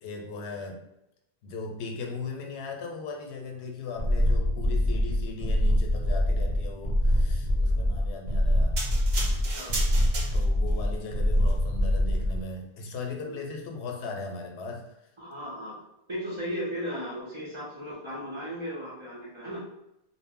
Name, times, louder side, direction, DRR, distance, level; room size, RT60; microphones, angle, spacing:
voice 1, 0.0-0.9 1.4-8.8 10.3-14.9, left 3 dB, 85° left, 2 dB, 0.8 m, -38 dB
sound 1, 4.0-12.4, equal, 55° left, 0.6 m, -24 dB
sound 2, 8.8-10.7 11.4-11.5, right 2 dB, 70° right, 0.9 m, -35 dB
voice 2, 15.2-15.8 16.1-19.6, equal, 35° right, -6 dB, 0.6 m, -36 dB
2.1 x 2.0 x 3.5 m, 0.85 s
omnidirectional pair, 1.1 m